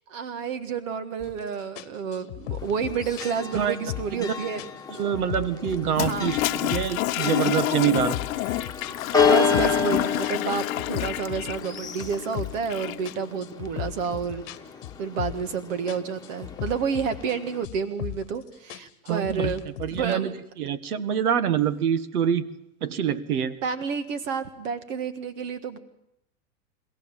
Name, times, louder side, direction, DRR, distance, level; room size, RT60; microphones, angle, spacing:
voice 1, 0.1-4.7 5.9-6.3 9.2-14.4 15.0-19.6 19.9-20.3 23.6-25.8, right 6 dB, 60° right, 10 dB, 1.7 m, -30 dB
sound 1, 1.2-1.4 1.8-4.3 4.6-6.1 6.3-7.1 7.4-9.9 10.2-12.7 13.0-15.6 15.9-17.4 17.6-18.4 18.7-20.1, left 15 dB, 50° left, 1.2 m, -37 dB
Church bell, 2.6-17.7, left 6 dB, 10° left, 1.6 m, -31 dB
voice 2, 5.0-8.2 19.1-19.5 19.8-20.3 20.6-22.4 22.8-23.6, right 8 dB, 80° right, 14 dB, 1.4 m, -25 dB
Toilet flush, 5.9-13.1, left 16 dB, 65° left, 0.7 m, -29 dB
24.5 x 16.5 x 7.3 m, 0.82 s
hypercardioid pair, 110°, 44 cm